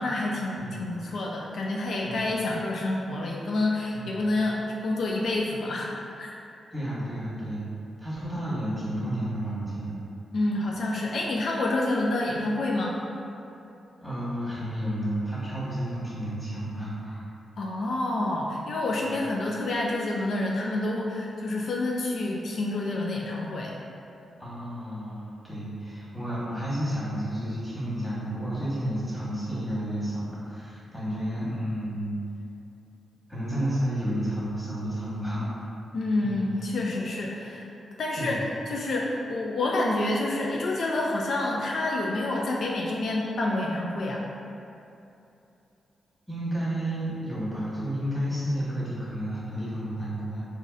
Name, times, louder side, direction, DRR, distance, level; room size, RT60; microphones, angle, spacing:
voice 1, 0.0-6.3 10.3-13.0 17.6-23.7 35.9-37.7 38.0-38.4 38.7-44.2, left 2 dB, 70° left, -2 dB, 0.3 m, -28 dB
voice 2, 6.7-7.7 8.0-10.0 14.0-17.3 19.0-19.2 24.4-32.2 33.3-35.5 36.2-36.5 38.2-38.4 46.3-50.5, equal, 5° left, -9 dB, 1.3 m, -31 dB
3.9 x 2.5 x 2.4 m, 2.8 s
cardioid pair, 70°, 0 cm